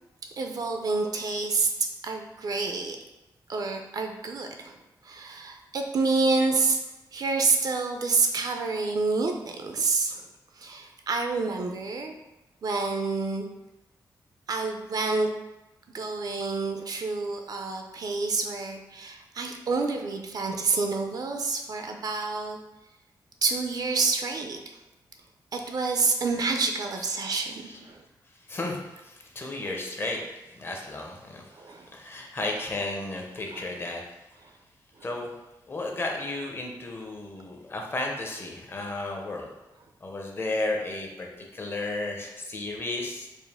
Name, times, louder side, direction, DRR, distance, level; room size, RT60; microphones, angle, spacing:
voice 1, 0.4-3.0 3.5-4.8 5.0-6.8 7.1-10.2 10.6-12.1 12.6-13.5 14.5-15.3 15.9-22.6 23.4-24.6 25.5-28.0 31.5-31.9 33.5-33.6 35.0-35.1, right 4 dB, 55° right, 4 dB, 0.4 m, -28 dB
voice 2, 25.6-26.5 26.8-27.0 27.5-27.9 28.5-30.3 30.5-34.0 35.0-35.3 35.7-39.5 40.0-43.3, left 2 dB, 30° left, 1 dB, 0.6 m, -34 dB
4.4 x 2.4 x 3.4 m, 0.99 s
wide cardioid pair, 150°, 8 cm